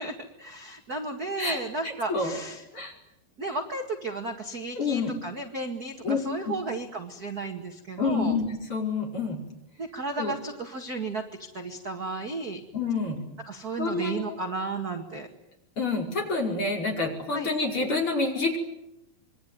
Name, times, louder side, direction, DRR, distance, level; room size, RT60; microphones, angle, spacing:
voice 1, 0.0-2.6 3.4-8.4 9.8-12.6 13.5-15.3 17.3-17.5, right 3 dB, 35° right, 4 dB, 1.8 m, -34 dB
voice 2, 1.4-2.4 2.7-2.9 4.7-5.2 6.0-6.2 8.0-9.4 10.2-10.3 12.7-13.2 13.8-14.3 15.8-18.6, left 3 dB, 35° left, 0 dB, 5.9 m, -28 dB
26.5 x 23.0 x 9.5 m, 0.88 s
omnidirectional pair, 4.1 m